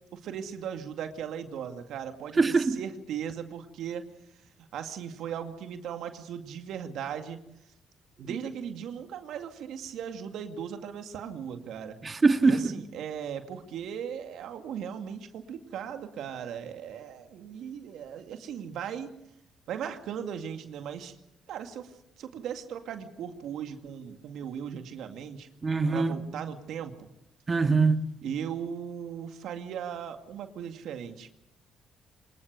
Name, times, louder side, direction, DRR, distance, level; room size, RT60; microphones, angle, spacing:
voice 1, 0.1-4.0 4.7-7.4 8.2-12.0 12.4-19.2 19.7-21.1 21.5-21.9 22.2-25.5 25.9-27.1 28.2-31.3, right 8 dB, 75° right, 2.1 m, -38 dB
voice 2, 2.4-2.8 12.0-12.6 25.6-26.1 27.5-28.0, right 4 dB, 35° right, 2.0 m, -22 dB
25.0 x 20.5 x 6.7 m
supercardioid pair, 65°, 0 cm